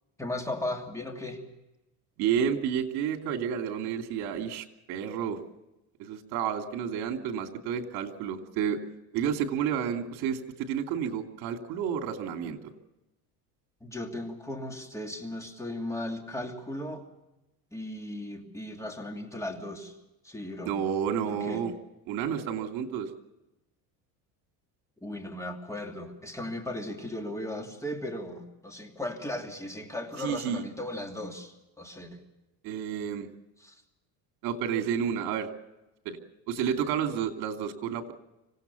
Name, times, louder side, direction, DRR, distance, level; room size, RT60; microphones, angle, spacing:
voice 1, 0.2-1.4 13.8-17.0 17.7-20.0 20.2-20.7 21.2-21.6 25.0-32.2 33.6-33.8, left 1 dB, 5° left, 3 dB, 2.8 m, -36 dB
voice 2, 2.2-5.4 6.0-8.8 9.1-12.6 20.6-21.7 22.1-23.1 30.2-30.6 32.6-33.3 34.4-35.5 36.0-36.2 36.5-38.1, right 8 dB, 70° right, 5 dB, 2.9 m, -30 dB
26.0 x 17.0 x 7.1 m, 0.96 s
cardioid pair, 140°, 39 cm